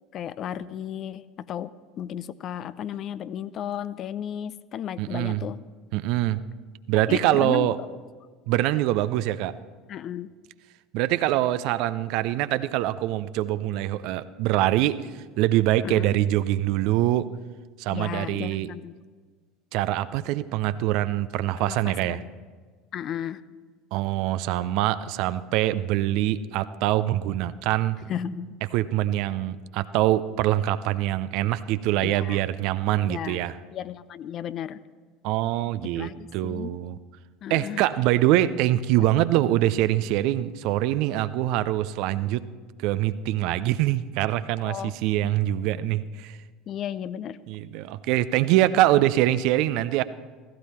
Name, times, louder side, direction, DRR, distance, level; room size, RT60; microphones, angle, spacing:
voice 1, 0.1-5.6 7.1-7.9 9.9-10.3 15.8-16.1 17.9-18.9 21.6-22.3 22.9-23.4 28.1-28.6 32.0-32.4 33.0-33.4 33.7-34.8 35.9-36.7 37.4-37.9 44.6-44.9 45.2-45.3 46.7-47.4, left 10 dB, 45° left, 16 dB, 0.5 m, -34 dB
voice 2, 5.0-5.4 5.9-6.4 6.9-7.8 8.5-9.5 10.9-17.3 17.8-18.7 19.7-22.2 23.9-28.0 28.7-33.6 35.2-37.0 37.5-42.4 42.8-46.4 47.5-50.0, right 14 dB, 55° right, 14 dB, 0.5 m, -24 dB
16.0 x 15.5 x 4.3 m, 1.5 s
figure-of-eight pair, 70°, 0 cm